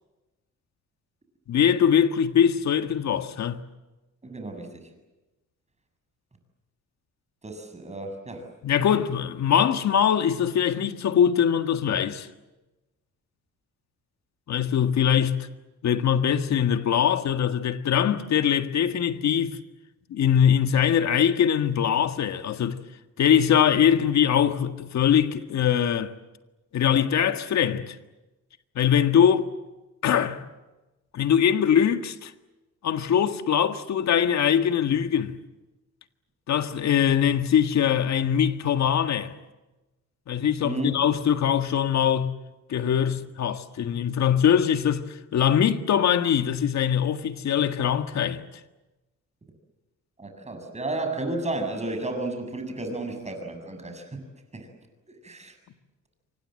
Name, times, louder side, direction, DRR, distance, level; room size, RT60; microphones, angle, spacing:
voice 1, 1.5-3.6 8.6-12.3 14.5-15.5 15.8-19.6 20.1-22.8 23.2-26.1 26.7-27.9 28.7-29.5 30.0-30.4 31.1-32.3 32.8-35.4 36.5-39.3 40.3-42.4 42.7-45.0 45.3-48.4, left 8 dB, 65° left, 1.8 m, -22 dB
voice 2, 4.2-4.7 7.4-8.4 40.6-40.9 50.2-54.2 54.5-54.7 55.2-55.5, right 2 dB, 20° right, 7.4 m, -32 dB
28.0 x 24.5 x 7.8 m
cardioid pair, 90°, 30 cm